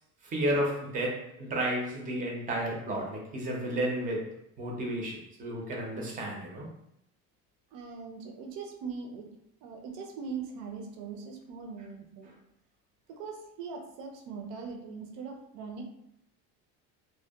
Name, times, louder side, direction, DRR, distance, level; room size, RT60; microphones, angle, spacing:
voice 1, 0.2-6.7, right 1 dB, 25° right, -1 dB, 0.4 m, -32 dB
voice 2, 7.7-9.3 9.6-12.3 13.1-15.8, right 5 dB, 75° right, 3 dB, 0.6 m, -41 dB
2.7 x 2.1 x 2.2 m, 0.77 s
cardioid pair, 170°, 35 cm